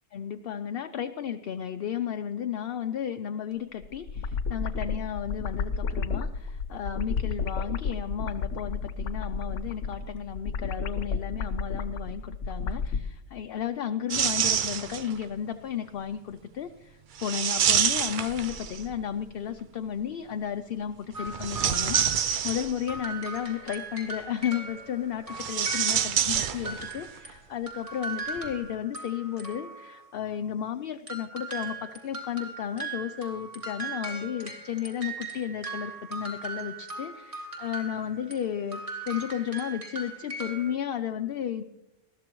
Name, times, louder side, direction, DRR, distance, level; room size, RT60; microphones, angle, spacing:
voice 1, 0.1-41.6, left 9 dB, 60° left, 8 dB, 0.8 m, -33 dB
sound 1, 3.8-13.1, left 5 dB, 75° left, 1.1 m, -32 dB
sound 2, 14.1-15.2 17.2-19.0 21.3-23.0 25.3-27.0 27.3-27.4 28.4-28.5, right 8 dB, 55° right, 0.6 m, -27 dB
sound 3, 21.1-27.3 27.7-30.0 31.1-38.4 38.7-40.7, right 3 dB, 25° right, 2.4 m, -39 dB
20.5 x 14.0 x 3.1 m, 0.89 s
omnidirectional pair, 1.3 m